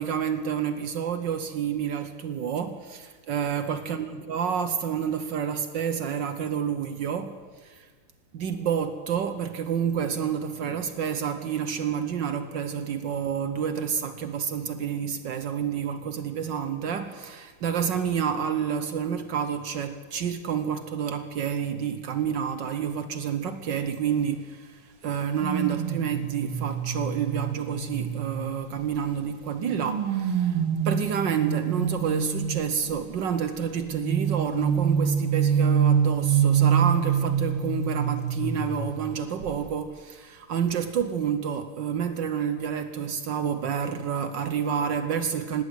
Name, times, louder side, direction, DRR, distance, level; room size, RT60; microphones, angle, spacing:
voice 1, 0.0-7.4 7.6-7.9 8.3-30.6 30.8-45.6, right 7 dB, 65° right, 1.4 m, -29 dB
sound 1, 25.4-29.0 29.6-32.9 33.9-39.1 39.4-39.7, right 7 dB, 90° right, 2.8 m, -26 dB
19.5 x 17.0 x 8.0 m
omnidirectional pair, 2.4 m